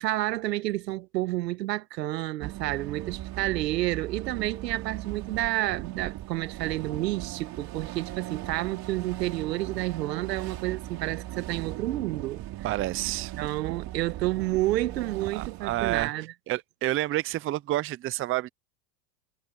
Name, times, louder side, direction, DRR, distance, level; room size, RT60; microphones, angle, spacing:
voice 1, 0.0-12.4 13.4-16.3, right 16 dB, 90° right, 1.5 m, -30 dB
sound 1, 2.4-16.1, right 15 dB, 45° right, 3.3 m, -38 dB
voice 2, 12.6-13.3 15.3-16.1 16.5-18.5, right 15 dB, 25° right, 0.5 m, -29 dB
supercardioid pair, 105°, 48 cm